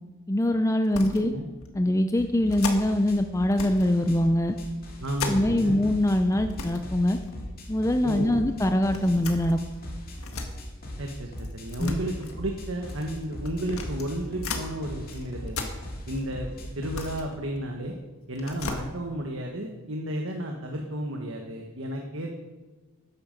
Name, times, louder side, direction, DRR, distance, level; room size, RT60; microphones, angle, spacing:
voice 1, 0.3-1.3 1.7-4.5 5.3-7.2 7.7-9.6 11.8-11.9, left 1 dB, 15° left, 7 dB, 0.5 m, -23 dB
sound 1, 0.8-1.3 1.6-1.7 2.5-3.1 3.5-3.9 4.2-5.8 6.1-6.2 6.4-6.8 7.2-7.8 8.6-10.5 11.4-14.7 15.1-16.3 16.7-18.0 18.3-18.8, left 4 dB, 75° left, 1.7 m, -37 dB
voice 2, 1.1-1.5 5.0-5.8 8.0-8.4 11.0-15.7 16.1-16.5 16.7-17.9 18.3-22.3, right 1 dB, 60° right, 2 dB, 1.4 m, -33 dB
sound 2, 2.2-17.4, equal, 40° left, 2.7 m, -40 dB
13.0 x 10.5 x 5.3 m, 1.2 s
head